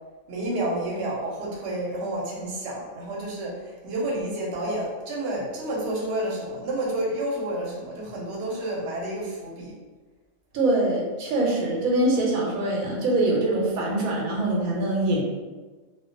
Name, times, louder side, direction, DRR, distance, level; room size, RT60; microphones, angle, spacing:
voice 1, 0.3-9.7, right 1 dB, 60° right, -4 dB, 0.9 m, -30 dB
voice 2, 10.5-15.2, right 1 dB, 85° right, -2 dB, 1.0 m, -23 dB
2.3 x 2.2 x 2.5 m, 1.3 s
omnidirectional pair, 1.4 m